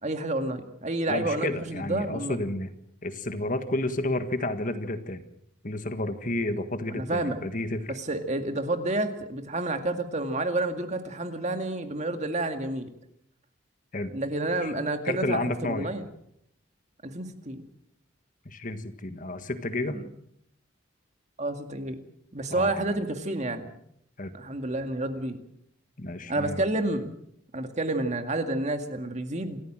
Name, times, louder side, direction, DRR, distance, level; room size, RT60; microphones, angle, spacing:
voice 1, 0.0-2.4 6.9-7.4 7.9-12.9 14.1-16.0 17.0-17.6 19.9-20.0 21.4-22.0 22.3-23.7 24.3-25.4 26.3-27.1 27.5-29.6, right 2 dB, 35° right, 7 dB, 2.1 m, -29 dB
voice 2, 1.1-2.7 3.0-5.2 5.6-8.0 13.9-14.1 14.6-14.7 15.1-15.9 18.4-20.0 22.5-23.0 24.2-24.3 26.0-26.7, left 2 dB, 40° left, 9 dB, 1.6 m, -31 dB
27.5 x 14.0 x 7.6 m, 0.73 s
head